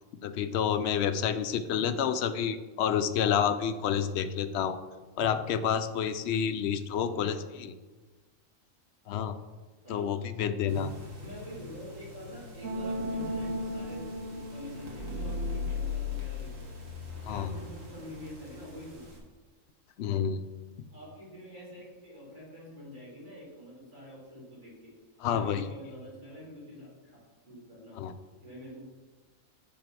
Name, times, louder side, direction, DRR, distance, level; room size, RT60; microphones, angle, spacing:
voice 1, 0.2-4.8 5.2-7.7 9.1-9.4 9.9-10.9 17.3-17.5 20.0-20.4 25.2-25.6 28.0-28.1, left 8 dB, 65° left, 11 dB, 0.8 m, -29 dB
voice 2, 6.9-7.6 9.8-10.1 11.2-16.7 17.3-19.0 20.9-24.9 25.3-28.0 28.4-28.9, left 1 dB, 35° right, -7 dB, 3.3 m, -46 dB
sound 1, 10.7-19.2, left 2 dB, 80° right, 2.0 m, -37 dB
9.4 x 4.1 x 6.0 m, 1.3 s
omnidirectional pair, 1.3 m